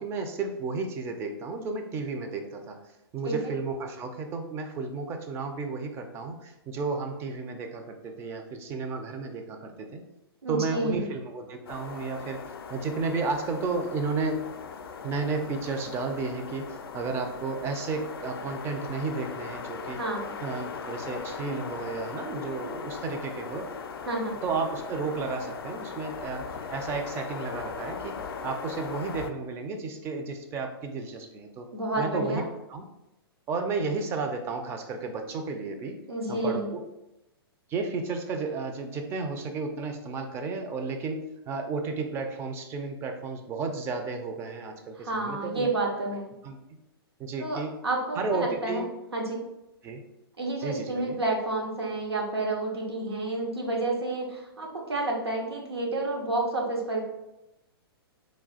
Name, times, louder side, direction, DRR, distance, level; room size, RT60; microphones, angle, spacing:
voice 1, 0.0-2.8 3.1-10.0 10.5-12.4 12.7-14.4 15.0-16.7 16.9-20.0 20.4-23.7 24.4-28.2 28.4-31.7 32.0-32.4 32.7-32.8 33.5-36.0 36.3-36.8 37.7-45.7 46.4-46.6 47.2-47.8 48.2-48.8 49.8-50.0 50.6-51.2, right 4 dB, 20° right, 5 dB, 0.4 m, -32 dB
voice 2, 10.4-11.1 20.0-20.3 24.0-24.3 31.7-32.4 36.1-36.7 45.0-46.3 47.4-48.8 49.1-49.4 50.4-57.0, right 2 dB, 80° right, -1 dB, 0.9 m, -30 dB
sound 1, 11.7-29.3, left 5 dB, 65° left, 0.4 m, -39 dB
3.1 x 2.3 x 4.0 m, 0.91 s
figure-of-eight pair, 115°, 13 cm